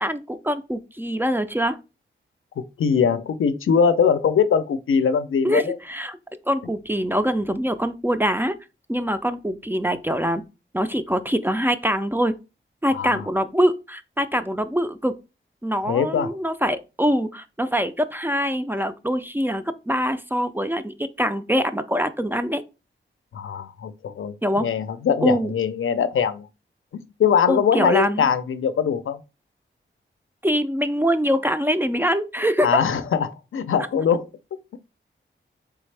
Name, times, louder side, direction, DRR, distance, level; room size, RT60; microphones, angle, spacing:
voice 1, 0.0-1.8 5.4-6.2 6.5-8.6 8.9-10.4 10.7-12.4 12.8-15.2 15.6-22.6 24.4-24.6 25.2-25.5 27.5-28.3 30.4-32.8 33.8-33.9, equal, 10° right, 0.3 m, -24 dB
voice 2, 2.6-5.8 12.9-13.2 15.9-16.3 23.3-26.5 27.2-29.2 32.6-34.3, left 7 dB, 80° left, 0.4 m, -22 dB
4.0 x 3.5 x 3.2 m
wide cardioid pair, 95°, 21 cm